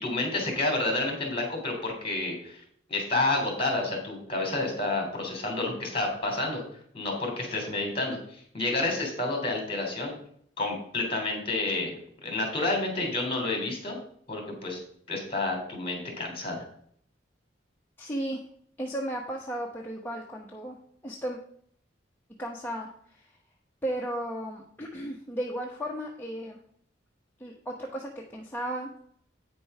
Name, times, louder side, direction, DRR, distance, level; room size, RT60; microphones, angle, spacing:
voice 1, 0.0-2.6 2.9-6.6 6.9-10.1 10.6-14.0 14.3-14.8 15.1-16.6, left 2 dB, 30° left, 2 dB, 3.0 m, -29 dB
voice 2, 18.0-18.4 18.8-20.8 21.0-21.4 22.4-23.2 23.8-26.6 27.4-29.0, right 1 dB, 10° left, -2 dB, 1.0 m, -35 dB
9.1 x 5.3 x 5.4 m, 0.63 s
head